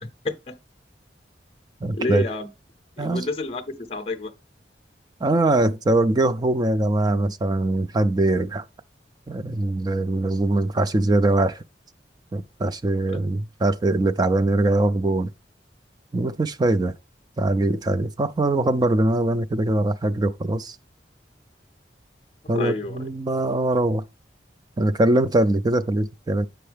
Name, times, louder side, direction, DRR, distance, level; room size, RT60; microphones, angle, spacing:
voice 1, 0.0-0.5 2.0-2.5 3.0-4.3 13.1-13.2 22.5-23.1, left 3 dB, 35° left, 0.6 m, -29 dB
voice 2, 1.8-2.2 3.0-3.3 5.2-8.6 9.3-11.6 12.3-15.3 16.1-16.9 17.4-20.8 22.5-24.0 24.8-26.5, right 2 dB, 25° right, 0.3 m, -22 dB
7.7 x 5.5 x 3.3 m
head